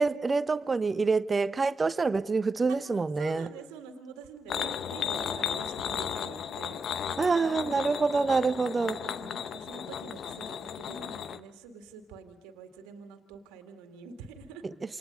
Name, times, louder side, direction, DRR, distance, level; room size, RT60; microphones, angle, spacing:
voice 1, 0.0-3.5 7.2-9.0, right 4 dB, 30° right, 1.0 m, -26 dB
voice 2, 3.2-6.8 7.5-7.8 9.0-14.6, right 5 dB, 75° right, 2.2 m, -46 dB
sound 1, 4.5-11.4, left 8 dB, 55° left, 0.9 m, -35 dB
28.0 x 27.5 x 5.3 m
hypercardioid pair, 55°, 0 cm